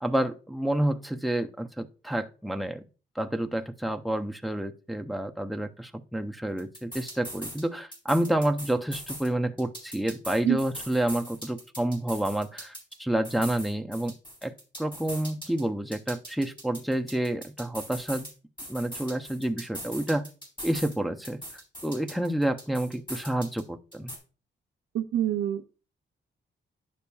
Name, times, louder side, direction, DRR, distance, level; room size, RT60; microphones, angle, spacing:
voice 1, 0.0-2.8 3.2-12.7 13.0-14.1 14.4-18.3 18.7-20.2 20.6-21.4 21.8-24.1, right 1 dB, ahead, 5 dB, 0.5 m, -29 dB
sound 1, 6.6-7.6 7.9-9.3 9.6-13.0 13.2-15.6 15.9-18.3 18.6-21.0 21.2-23.6 23.9-24.2, equal, 25° left, 3.7 m, -41 dB
voice 2, 24.9-25.7, right 11 dB, 85° right, 6 dB, 0.5 m, -26 dB
10.5 x 6.8 x 2.3 m, 0.36 s
wide cardioid pair, 115°, 20 cm